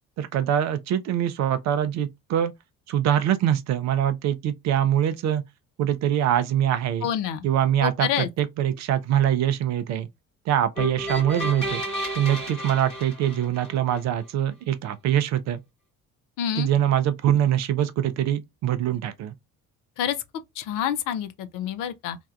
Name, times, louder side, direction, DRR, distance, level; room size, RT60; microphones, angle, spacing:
voice 1, 0.2-2.5 2.9-5.4 5.8-7.1 7.4-10.1 10.5-11.8 12.1-15.6 16.6-19.3, right 10 dB, 40° right, 0.4 m, -23 dB
voice 2, 7.0-7.5 7.8-8.3 16.4-16.7 20.0-20.2 20.6-22.2, left 9 dB, 50° left, 0.5 m, -27 dB
sound 1, 10.8-14.0, right 1 dB, 90° left, 1.2 m, -32 dB
3.3 x 2.2 x 2.3 m
figure-of-eight pair, 45°, 44 cm